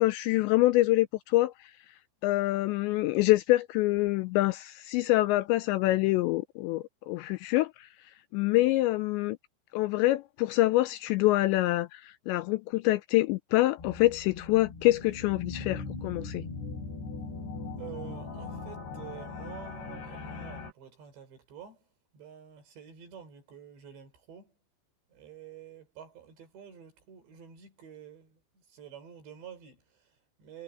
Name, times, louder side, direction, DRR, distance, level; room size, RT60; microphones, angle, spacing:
voice 1, 0.0-1.7 2.2-7.9 8.3-9.4 9.7-16.4, left 18 dB, 80° left, 2.6 m, -26 dB
sound 1, 13.8-20.7, left 4 dB, 65° left, 8.2 m, -40 dB
voice 2, 17.8-24.6 25.1-30.6, right 8 dB, 65° right, 7.7 m, -48 dB
omnidirectional pair, 5.5 m